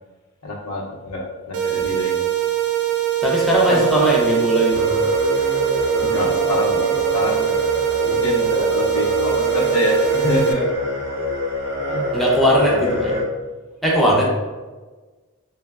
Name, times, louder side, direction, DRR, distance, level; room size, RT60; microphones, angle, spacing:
voice 1, 0.4-2.2 3.7-4.1 6.0-7.6 8.1-10.7 11.9-12.2 12.6-13.0, left 1 dB, 90° left, -2 dB, 0.6 m, -25 dB
sound 1, 1.5-10.5, right 13 dB, 75° right, 0.3 m, -22 dB
voice 2, 3.2-4.9 12.1-13.2 13.8-14.3, equal, ahead, -5 dB, 0.5 m, -18 dB
sound 2, 4.7-13.2, left 2 dB, 50° right, 0.7 m, -25 dB
3.0 x 2.0 x 2.3 m, 1.3 s
head